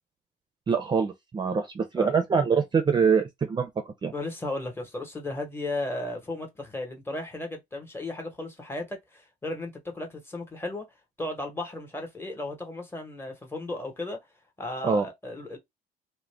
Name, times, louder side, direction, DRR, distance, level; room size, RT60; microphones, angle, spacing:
voice 1, 0.7-4.1 14.8-15.1, right 5 dB, 25° right, 0.5 m, -24 dB
voice 2, 4.1-10.8 11.2-14.2 14.6-15.6, left 2 dB, 15° left, 1.0 m, -35 dB
2.4 x 2.1 x 3.2 m
cardioid pair, 110°, 17 cm